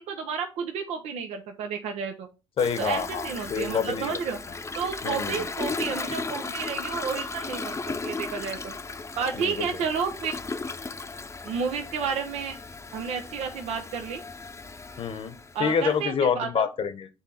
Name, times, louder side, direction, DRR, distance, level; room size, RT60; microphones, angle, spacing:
voice 1, 0.0-2.3 2.8-4.4 4.7-8.7 9.2-10.3 11.4-12.6 12.9-14.2 15.5-16.7, right 6 dB, 75° right, 0.8 m, -31 dB
voice 2, 2.6-4.2 5.0-5.4 9.3-9.7 15.0-17.1, left 6 dB, 55° left, 0.9 m, -27 dB
Toilet flush, 2.6-16.0, left 4 dB, 25° left, 0.7 m, -36 dB
7.3 x 3.5 x 4.1 m
supercardioid pair, 60°, 11 cm